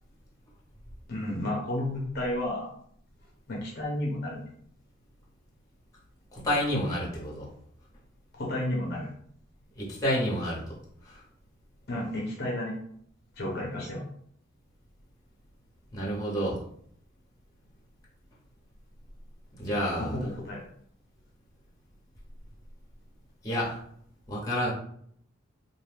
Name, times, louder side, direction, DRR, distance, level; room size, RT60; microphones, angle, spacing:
voice 1, 1.1-2.7 3.5-4.4 8.3-9.1 11.9-12.7 13.4-14.0 20.0-20.6, left 1 dB, 50° left, -3 dB, 0.7 m, -32 dB
voice 2, 6.3-7.5 9.8-10.8 11.0-11.2 15.9-16.6 19.6-20.1 23.4-23.8 24.3-24.7, equal, 20° left, -6 dB, 0.9 m, -29 dB
2.5 x 2.3 x 3.3 m, 0.65 s
head